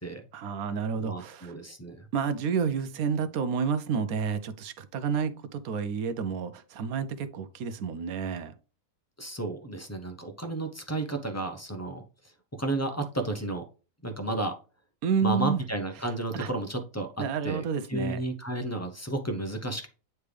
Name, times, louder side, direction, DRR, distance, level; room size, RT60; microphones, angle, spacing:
voice 1, 0.3-1.5 2.1-8.5 15.0-15.6 16.3-16.5 17.2-18.2, right 6 dB, 70° right, 1.1 m, -30 dB
voice 2, 1.0-2.1 9.2-12.0 12.6-13.6 14.0-14.5 15.2-19.9, right 2 dB, 20° left, 0.4 m, -32 dB
9.4 x 3.3 x 3.3 m
omnidirectional pair, 1.6 m